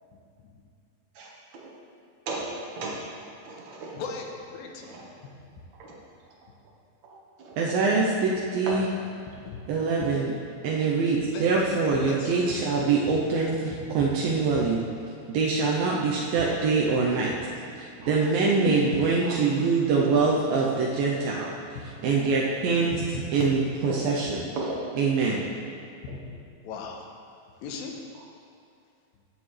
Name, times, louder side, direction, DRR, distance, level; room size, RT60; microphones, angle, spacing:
voice 1, 1.1-1.8 2.3-3.0 3.3-4.0 4.8-5.1 7.0-7.6 8.7-8.8 9.4-9.5 18.0-18.7 19.2-19.4 22.8-22.9 23.9-24.2 24.6-24.8 26.1-26.2, right 3 dB, 60° right, -3 dB, 2.5 m, -36 dB
voice 2, 3.9-5.1 9.4-9.6 10.0-10.1 11.2-11.5 11.9-12.9 13.7-14.1 21.8-21.9 22.9-23.0 23.5-23.6 26.0-26.2 26.6-27.1 27.6-28.0, left 5 dB, 80° left, 1 dB, 2.7 m, -38 dB
voice 3, 7.6-8.8 9.7-10.3 10.6-14.8 15.3-17.3 17.8-21.5 22.0-23.0 23.3-24.4 25.0-25.4, right 4 dB, 80° right, -3 dB, 2.5 m, -24 dB
15.0 x 7.5 x 3.3 m, 2.4 s
omnidirectional pair, 4.2 m